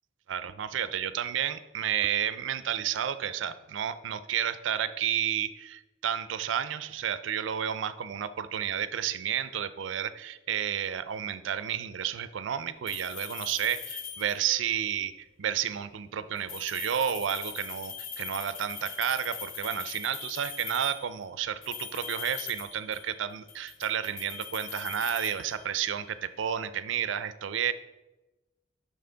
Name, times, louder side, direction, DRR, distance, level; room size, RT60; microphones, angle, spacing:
voice 1, 0.3-27.7, right 9 dB, 75° right, 13 dB, 0.4 m, -31 dB
sound 1, 12.9-14.6 16.4-21.1 21.6-23.2 23.5-26.0, left 7 dB, 85° left, 0.8 m, -41 dB
6.2 x 5.6 x 3.8 m, 1.0 s
head